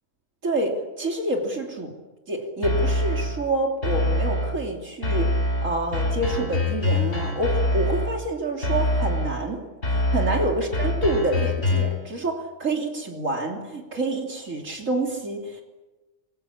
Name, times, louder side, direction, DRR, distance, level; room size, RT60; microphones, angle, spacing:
voice 1, 0.4-1.9 2.3-5.4 5.6-9.7 10.1-15.6, right 2 dB, 75° right, 1 dB, 3.7 m, -27 dB
sound 1, 2.6-3.4 3.8-4.6 5.0-8.2 8.6-9.4 9.8-12.0, left 1 dB, 70° left, 5.6 m, -24 dB
27.0 x 23.0 x 8.6 m, 1.2 s
omnidirectional pair, 1.4 m